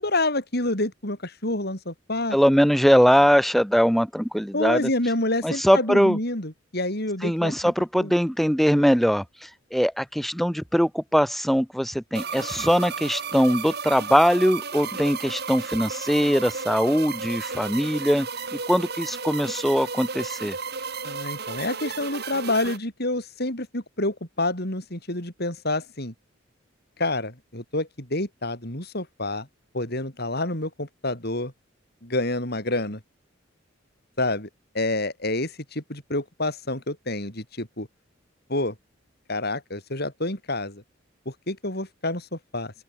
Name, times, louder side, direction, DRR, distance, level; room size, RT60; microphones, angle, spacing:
voice 1, 0.0-2.4 4.5-8.1 21.0-26.1 27.0-29.5 29.7-31.5 32.0-33.0 34.2-34.5 34.7-37.9 38.5-38.7 39.3-40.8 41.3-42.7, left 2 dB, 55° left, 7.7 m, -28 dB
voice 2, 2.3-4.9 5.4-6.2 7.2-20.6, equal, ahead, 7.6 m, -21 dB
sound 1, 12.1-22.8, right 5 dB, 55° right, 5.6 m, -33 dB
open air
head